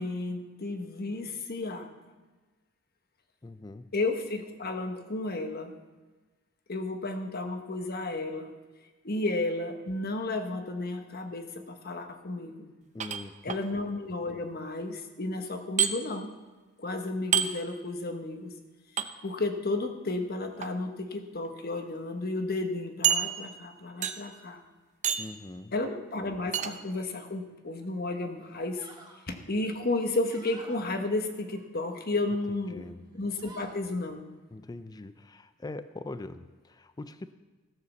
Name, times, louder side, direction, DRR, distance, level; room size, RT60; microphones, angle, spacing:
voice 1, 0.0-1.9 3.9-5.7 6.7-8.5 9.0-12.7 13.4-16.3 16.8-18.5 19.2-24.6 25.7-28.8 29.3-32.8 33.1-34.2, left 2 dB, 50° left, 6 dB, 1.2 m, -32 dB
voice 2, 3.4-3.9 12.9-13.6 25.2-25.7 32.7-33.0 34.5-37.3, left 2 dB, 20° left, 12 dB, 0.4 m, -42 dB
sound 1, 13.0-13.6 15.8-15.9 17.3-17.5 19.0-19.1 20.4-20.7 21.4-21.5 21.9-22.0 23.0-23.7 24.0-24.4 25.0-25.4 26.5-26.7, right 8 dB, 35° right, 0.6 m, -28 dB
sound 2, 27.7-28.0 28.4-29.2 29.6-30.9 31.4-32.3 32.7-32.9 33.2-33.8, right 2 dB, 20° right, 1.7 m, -52 dB
15.0 x 6.7 x 7.0 m, 1.3 s
head